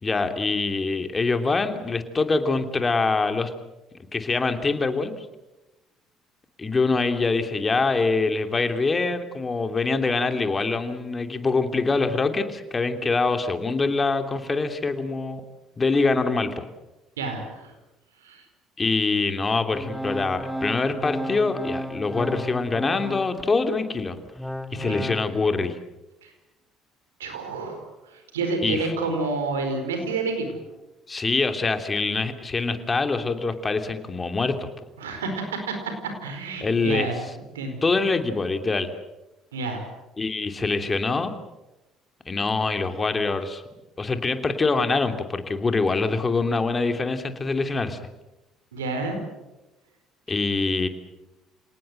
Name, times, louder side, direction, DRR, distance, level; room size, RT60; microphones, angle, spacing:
voice 1, 0.0-3.5 4.1-5.1 6.6-15.4 15.8-16.7 18.8-24.2 24.7-25.8 28.6-28.9 31.1-34.7 36.6-37.1 37.8-38.9 40.2-41.3 42.3-43.6 44.0-48.0 50.3-50.9, left 3 dB, 30° left, 7 dB, 2.9 m, -24 dB
voice 2, 17.2-17.7 18.2-18.4 24.7-25.0 26.2-26.3 27.2-27.8 28.1-30.6 35.0-35.9 36.2-37.2 37.5-37.8 39.5-39.8 48.7-49.2, right 3 dB, 90° right, 6 dB, 4.5 m, -29 dB
Organ, 19.7-23.5 24.0-25.3, equal, ahead, 1.7 m, -33 dB
27.5 x 18.5 x 7.9 m, 1.0 s
hypercardioid pair, 60°, 0 cm